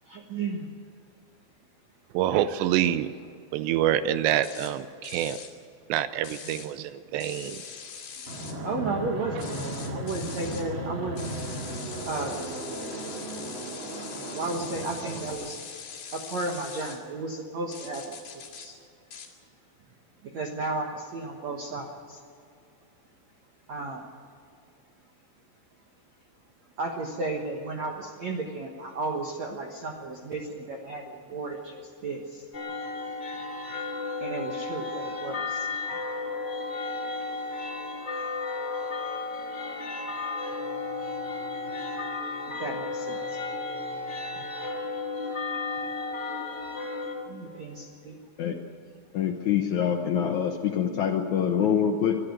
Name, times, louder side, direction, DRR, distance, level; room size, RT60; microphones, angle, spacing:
voice 1, 0.1-0.7 8.6-9.5 9.9-11.3 12.1-12.4 14.3-15.6 16.1-18.1 18.3-18.8 20.2-22.2 23.7-24.1 26.8-32.4 34.2-35.7 42.6-43.4 43.9-44.1 47.3-48.2, right 3 dB, 60° right, 1.8 m, -34 dB
voice 2, 2.1-3.1 3.5-5.4 5.9-7.6, right 11 dB, 80° right, 2.8 m, -26 dB
sound 1, 4.4-4.7 5.0-5.5 6.2-6.7 7.2-8.5 9.4-10.7 11.2-17.0 17.7-18.7 19.1-19.3, left 6 dB, 55° left, 4.0 m, -42 dB
Fixed-wing aircraft airplane, 8.3-15.3, right 1 dB, 35° right, 2.4 m, -36 dB
sound 2, 32.5-47.1, left 3 dB, 20° left, 1.7 m, -33 dB
voice 3, 49.1-52.2, left 8 dB, 80° left, 1.6 m, -25 dB
23.0 x 12.5 x 9.4 m
omnidirectional pair, 5.1 m